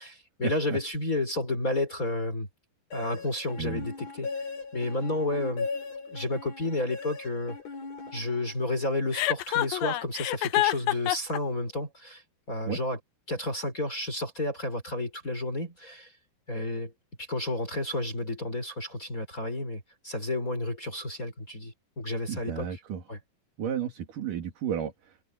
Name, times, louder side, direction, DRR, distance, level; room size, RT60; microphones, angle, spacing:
voice 1, 0.0-2.5 2.9-4.3 4.7-5.7 6.1-7.6 8.1-13.0 13.3-16.1 16.5-16.9 17.2-22.8 23.1-23.2, left 2 dB, 20° left, 4.5 m, -31 dB
sound 1, 2.9-8.7, left 4 dB, 45° left, 5.7 m, -38 dB
Chuckle chortle, 9.1-11.4, left 16 dB, 80° left, 2.7 m, -26 dB
voice 2, 22.3-23.0 23.6-25.2, right 8 dB, 60° right, 4.0 m, -33 dB
omnidirectional pair, 4.3 m